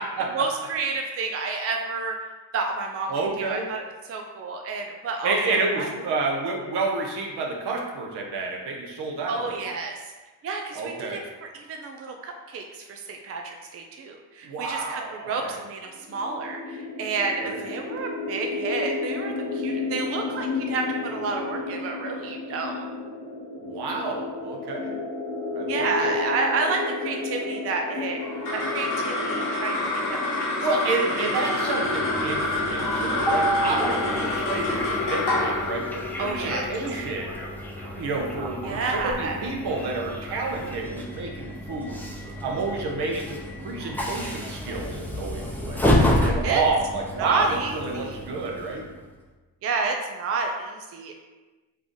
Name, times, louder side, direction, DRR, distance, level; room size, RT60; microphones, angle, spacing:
voice 1, 0.3-5.9 9.3-10.1 10.4-22.9 25.7-28.2 28.5-30.5 31.0-31.1 31.4-31.6 36.2-36.7 38.6-39.4 46.4-46.6 47.2-48.2 49.6-51.1, right 4 dB, 35° right, 2 dB, 0.4 m, -30 dB
voice 2, 3.1-3.7 5.2-9.7 10.7-11.2 14.4-15.6 17.4-17.6 23.6-24.9 25.5-26.1 30.6-37.4 38.0-42.1 42.4-48.9, right 3 dB, 60° right, 0 dB, 0.9 m, -29 dB
sound 1, 16.0-31.7, left 3 dB, 35° left, 0.9 m, -32 dB
sound 2, 28.2-38.8, left 2 dB, 65° left, 1.3 m, -28 dB
Train, 31.8-49.0, equal, 5° left, 0.6 m, -30 dB
3.3 x 2.5 x 3.6 m, 1.2 s
hypercardioid pair, 50°, 45 cm